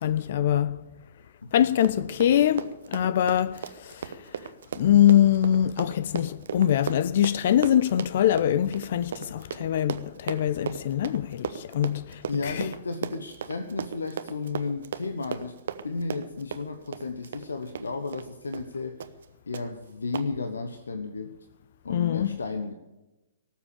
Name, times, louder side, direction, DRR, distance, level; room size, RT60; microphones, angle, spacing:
voice 1, 0.0-0.9 1.5-12.7 21.9-22.4, left 11 dB, 50° left, 0.5 m, -24 dB
Run, 1.6-18.3 18.5-18.7 19.0-19.3 19.5-19.6 20.1-20.3, right 7 dB, 60° right, 0.9 m, -36 dB
voice 2, 12.3-15.6 15.8-19.1 19.5-21.4 21.8-22.7, left 4 dB, 70° left, 1.1 m, -33 dB
18.5 x 7.4 x 8.7 m
figure-of-eight pair, 115°, 0 cm